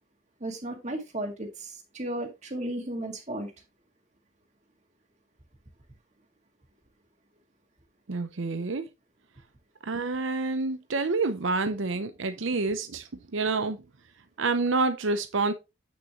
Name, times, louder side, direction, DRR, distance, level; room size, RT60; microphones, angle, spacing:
voice 1, 0.4-3.5, right 1 dB, 35° right, 2.0 m, -34 dB
voice 2, 8.1-8.9 9.8-13.0 13.3-13.8 14.4-15.5, right 3 dB, 70° right, 0.7 m, -28 dB
8.7 x 6.2 x 3.1 m
head